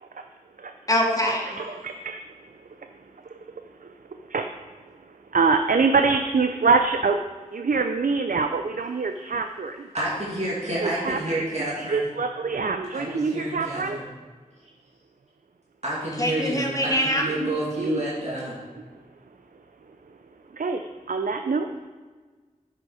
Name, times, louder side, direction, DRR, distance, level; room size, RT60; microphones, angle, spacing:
voice 1, 0.9-1.6 16.2-17.2, left 1 dB, 25° left, 0 dB, 1.7 m, -23 dB
voice 2, 1.6-2.2 2.8-4.9 5.3-7.2 7.5-9.9 10.8-11.4 11.8-14.0 17.2-18.0 20.5-21.7, right 4 dB, 85° right, 6 dB, 0.4 m, -25 dB
voice 3, 9.9-12.0 12.9-14.0 15.8-18.5, right 1 dB, 55° right, -7 dB, 2.5 m, -29 dB
8.4 x 6.7 x 4.9 m, 1.4 s
wide cardioid pair, 45°, 14 cm